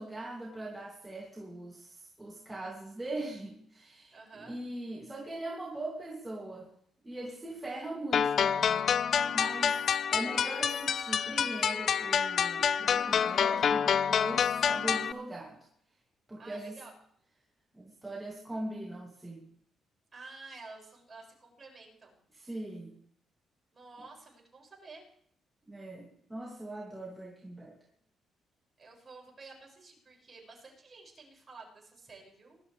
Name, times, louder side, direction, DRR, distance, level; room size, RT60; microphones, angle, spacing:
voice 1, 0.0-6.7 7.0-8.8 9.3-9.8 10.1-15.6 16.3-16.8 17.7-19.4 22.3-22.9 25.7-27.8, right 2 dB, 15° right, -2 dB, 2.6 m, -40 dB
voice 2, 4.1-4.6 16.4-16.9 20.1-22.2 23.7-25.1 27.8-28.0 28.8-32.6, right 3 dB, 30° right, -1 dB, 6.3 m, -51 dB
sound 1, 8.1-15.1, left 7 dB, 55° left, 0.5 m, -28 dB
20.5 x 12.0 x 3.4 m, 0.67 s
cardioid pair, 90°, 0 cm